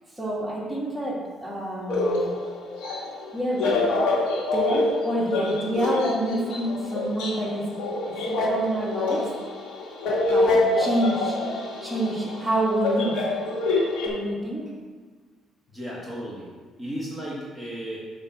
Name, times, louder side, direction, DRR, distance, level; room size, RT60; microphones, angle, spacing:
voice 1, 0.2-2.3 3.3-3.8 4.5-7.7 8.1-9.3 10.3-11.4 11.8-13.2 14.0-14.7, right 1 dB, 10° right, -4 dB, 2.0 m, -28 dB
sound 1, 1.9-14.1, left 2 dB, 80° left, 1.9 m, -26 dB
voice 2, 15.7-16.5 16.8-18.1, equal, 10° left, -5 dB, 1.6 m, -35 dB
6.3 x 5.4 x 6.1 m, 1.4 s
cardioid pair, 100°, 0 cm